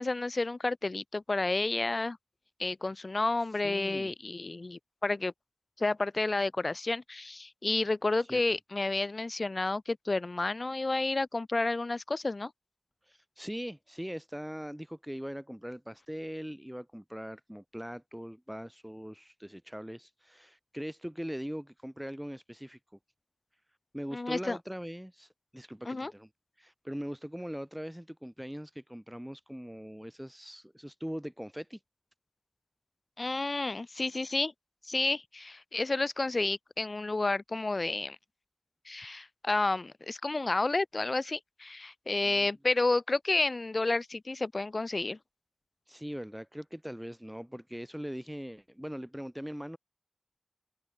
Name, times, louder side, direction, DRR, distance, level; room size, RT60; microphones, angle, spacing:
voice 1, 0.0-2.2 2.6-5.3 5.8-12.5 24.1-24.6 25.9-26.1 33.2-34.5 34.9-38.2 38.9-45.2, left 2 dB, 75° left, 4.0 m, -31 dB
voice 2, 3.6-4.1 8.3-8.4 13.1-22.8 23.9-26.3 26.6-31.8 42.2-42.5 45.9-49.8, equal, 5° right, 4.5 m, -41 dB
open air
wide cardioid pair, 50°, 0 cm